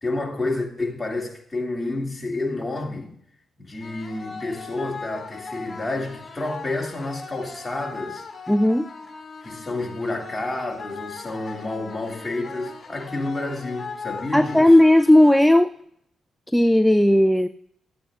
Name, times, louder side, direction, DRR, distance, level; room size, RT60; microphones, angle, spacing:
voice 1, 0.0-3.1 3.6-8.3 9.4-14.7, left 2 dB, 20° left, 2.2 m, -29 dB
sound 1, 3.8-15.8, left 4 dB, 40° left, 2.0 m, -39 dB
voice 2, 8.5-8.9 14.3-15.7 16.5-17.5, left 1 dB, 5° left, 0.3 m, -15 dB
13.0 x 8.6 x 2.4 m
cardioid pair, 80°, 0 cm